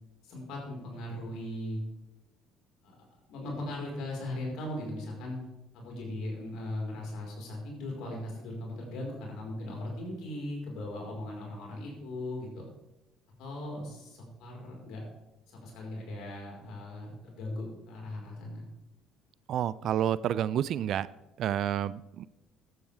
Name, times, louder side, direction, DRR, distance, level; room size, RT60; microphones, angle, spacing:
voice 1, 0.2-1.8 2.8-2.9 3.3-5.4 5.7-12.7 13.4-15.0 15.5-18.6, left 1 dB, 65° left, -1 dB, 4.9 m, -38 dB
voice 2, 19.5-21.1 21.4-22.3, right 10 dB, 60° right, 19 dB, 0.4 m, -29 dB
14.0 x 12.5 x 3.6 m, 0.95 s
hypercardioid pair, 55°, 0 cm